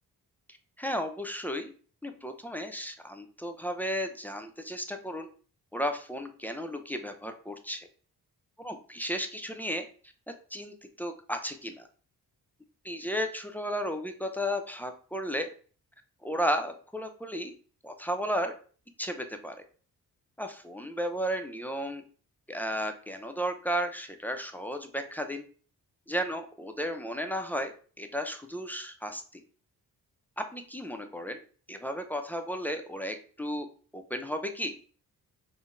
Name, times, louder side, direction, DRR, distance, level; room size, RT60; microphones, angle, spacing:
voice 1, 0.8-1.7 2.0-5.3 5.7-7.9 8.6-9.9 10.5-11.9 12.8-15.5 16.2-17.5 17.8-18.5 19.0-19.6 20.4-22.0 22.5-25.5 26.1-29.4 30.4-31.4 31.7-33.7 33.9-34.7, equal, 5° left, 6 dB, 0.3 m, -34 dB
3.7 x 2.0 x 2.4 m, 0.41 s
cardioid pair, 75°, 38 cm